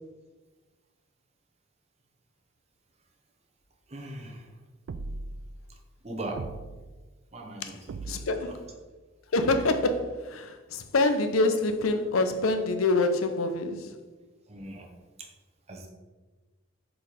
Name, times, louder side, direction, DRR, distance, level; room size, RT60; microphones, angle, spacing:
voice 1, 3.9-4.5 5.7-5.8 6.0-6.5 7.3-8.6 14.5-14.9 15.7-15.9, right 1 dB, 30° right, 0.9 m, -40 dB
sound 1, 4.9-5.5 6.4-7.0 7.9-8.5 9.4-10.0, right 3 dB, 70° right, 0.3 m, -39 dB
voice 2, 8.1-8.6 9.3-13.9, left 2 dB, 80° left, 0.6 m, -26 dB
4.6 x 4.2 x 5.0 m
head